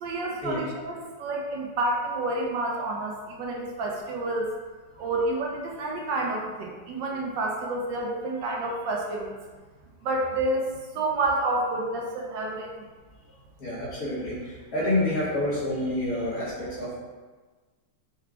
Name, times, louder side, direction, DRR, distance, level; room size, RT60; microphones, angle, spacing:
voice 1, 0.0-4.5 5.0-9.4 10.0-12.7, right 2 dB, 75° right, -1 dB, 1.2 m, -29 dB
voice 2, 13.6-16.9, left 1 dB, 55° left, -7 dB, 1.3 m, -28 dB
4.8 x 2.2 x 3.4 m, 1.3 s
omnidirectional pair, 2.1 m